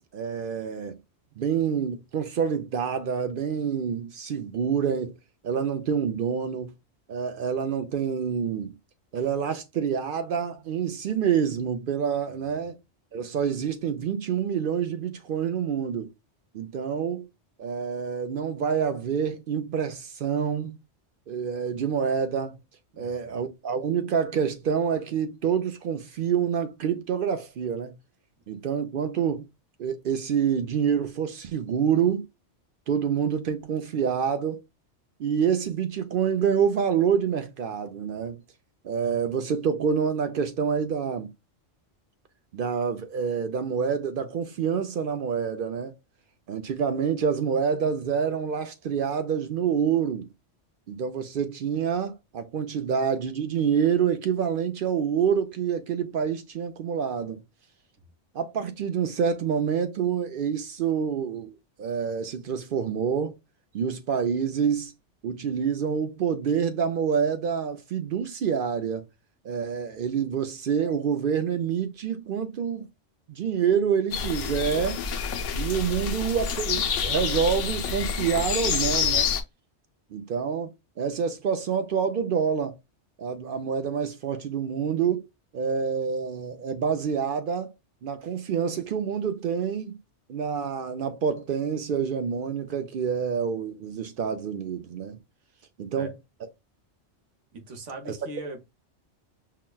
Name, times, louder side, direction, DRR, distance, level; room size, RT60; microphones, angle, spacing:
voice 1, 0.1-1.0 1.4-5.1 5.4-6.7 7.1-8.7 9.1-12.8 13.1-16.1 16.5-17.3 17.6-20.8 21.3-22.5 23.0-27.9 28.5-29.5 29.8-32.3 32.9-34.6 35.2-38.4 38.8-41.3 42.5-46.0 46.5-50.3 50.9-57.4 58.3-61.5 61.8-63.3 63.7-64.9 65.2-69.0 69.4-72.9 73.3-75.0 75.6-79.3 80.1-82.8 83.2-85.3 85.5-87.7 88.0-90.0 90.3-95.2 95.8-96.1 98.1-98.2, right 7 dB, 60° right, 0.6 m, -27 dB
voice 2, 22.9-23.4 96.0-96.1 97.5-98.6, right 2 dB, 90° right, 1.3 m, -41 dB
sound 1, 74.1-79.4, left 6 dB, 90° left, 1.0 m, -28 dB
5.7 x 2.1 x 2.2 m
omnidirectional pair, 1.2 m